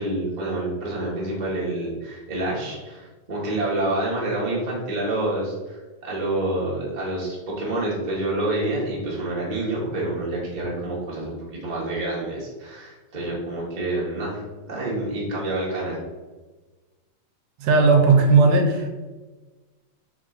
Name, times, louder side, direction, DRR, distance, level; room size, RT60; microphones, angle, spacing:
voice 1, 0.0-11.3 11.6-14.4 14.7-16.0, right 2 dB, 50° right, -6 dB, 0.5 m, -27 dB
voice 2, 17.6-18.9, right 4 dB, 80° right, 4 dB, 2.1 m, -16 dB
5.0 x 3.7 x 5.1 m, 1.3 s
omnidirectional pair, 4.0 m